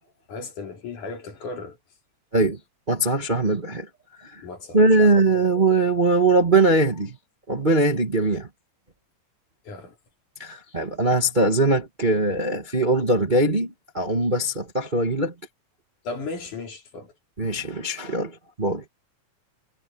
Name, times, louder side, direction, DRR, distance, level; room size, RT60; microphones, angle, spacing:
voice 1, 0.3-1.8 4.4-5.5 9.6-10.0 16.0-17.1, left 3 dB, 70° left, 4.8 m, -36 dB
voice 2, 2.9-3.9 4.3-4.4 4.7-7.1 7.5-8.5 10.4-13.7 13.9-15.3 17.4-18.3 18.6-18.8, right 2 dB, 25° right, 1.2 m, -21 dB
omnidirectional pair, 3.7 m